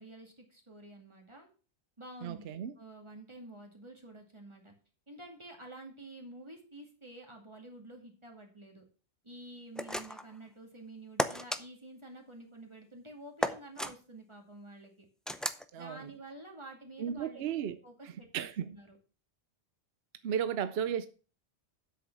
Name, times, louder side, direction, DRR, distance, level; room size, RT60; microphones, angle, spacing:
voice 1, 0.0-1.5 2.0-2.5 2.8-4.7 5.1-8.8 9.2-15.1 15.8-18.5 18.7-19.0, right 1 dB, 25° right, 2.3 m, -50 dB
voice 2, 2.2-2.7 15.7-16.1 17.0-17.8 18.0-18.7 20.2-21.1, right 8 dB, 70° right, 0.9 m, -34 dB
sound 1, 9.8-10.3 11.2-11.6 13.4-13.9 15.3-15.6, equal, ahead, 0.3 m, -33 dB
8.1 x 6.6 x 6.1 m
omnidirectional pair, 1.1 m